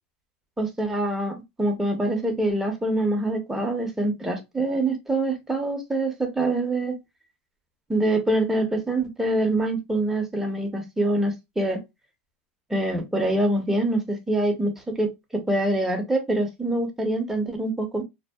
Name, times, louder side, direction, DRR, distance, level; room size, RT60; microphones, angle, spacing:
voice 1, 0.6-7.0 7.9-11.8 12.7-18.0, right 1 dB, 5° right, 0.6 m, -25 dB
2.6 x 2.0 x 2.2 m
supercardioid pair, 120°, 7 cm